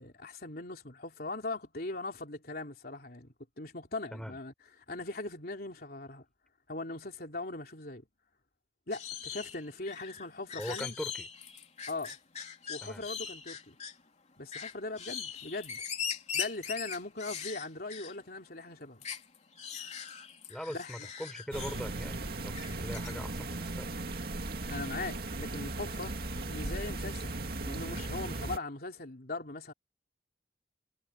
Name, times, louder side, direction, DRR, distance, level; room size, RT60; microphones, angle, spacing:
voice 1, 0.0-4.5 4.9-6.2 6.7-8.1 8.9-11.0 11.9-12.2 12.7-13.8 14.4-15.8 16.3-19.0 20.7-21.1 24.7-26.2 26.5-27.3 27.6-29.7, left 2 dB, 55° left, 3.3 m, -40 dB
sound 1, 8.9-14.0 14.5-18.2 18.5-18.6 19.0-21.9 22.5-23.1, left 7 dB, 40° left, 3.0 m, -41 dB
voice 2, 10.6-11.3 12.8-13.1 20.5-23.9, equal, 5° left, 5.2 m, -41 dB
sound 2, 21.5-28.6, right 2 dB, 60° right, 2.3 m, -37 dB
head